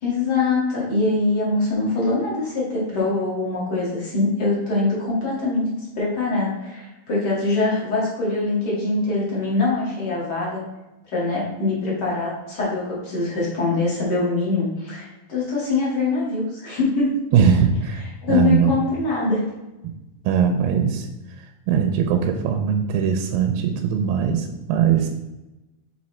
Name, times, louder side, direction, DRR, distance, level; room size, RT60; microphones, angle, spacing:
voice 1, 0.0-10.6 11.1-17.1 18.0-19.4, left 3 dB, 35° left, -6 dB, 2.1 m, -23 dB
voice 2, 17.3-18.0 18.3-18.8 20.3-21.1 21.7-25.1, right 7 dB, 80° right, 5 dB, 2.2 m, -20 dB
6.1 x 4.5 x 4.1 m, 1.0 s
omnidirectional pair, 4.2 m